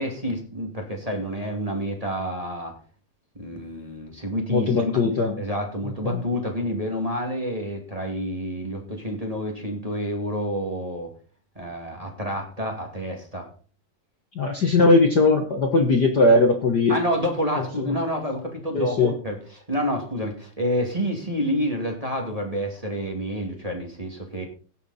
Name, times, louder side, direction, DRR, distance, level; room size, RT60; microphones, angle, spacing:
voice 1, 0.0-2.8 3.3-4.9 5.4-11.1 11.6-13.5 16.9-24.4, equal, 15° right, 1 dB, 1.8 m, -28 dB
voice 2, 4.5-5.3 6.0-6.2 14.3-17.0 17.6-18.0 18.7-19.1, left 2 dB, 60° left, 3 dB, 1.0 m, -19 dB
16.5 x 6.9 x 4.2 m, 0.40 s
omnidirectional pair, 3.8 m